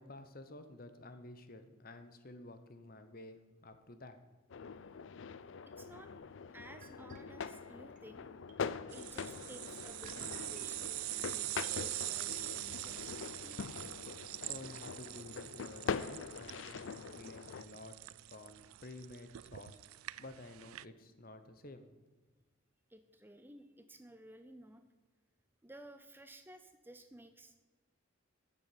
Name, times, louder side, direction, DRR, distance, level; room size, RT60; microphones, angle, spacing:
voice 1, 0.0-4.2 14.5-18.0 18.3-19.8 20.2-21.9, left 2 dB, 45° left, 9 dB, 1.0 m, -52 dB
sound 1, 4.5-17.6, left 5 dB, 65° left, 0.4 m, -43 dB
voice 2, 5.8-6.2 6.5-8.3 8.9-13.6 22.9-24.8 25.6-27.6, right 1 dB, 10° right, 8 dB, 0.6 m, -55 dB
sound 2, 6.8-12.1, right 1 dB, 40° right, 1.2 m, -59 dB
sound 3, 8.9-20.8, right 19 dB, 85° right, 0.3 m, -44 dB
10.0 x 7.2 x 8.6 m, 1.3 s
head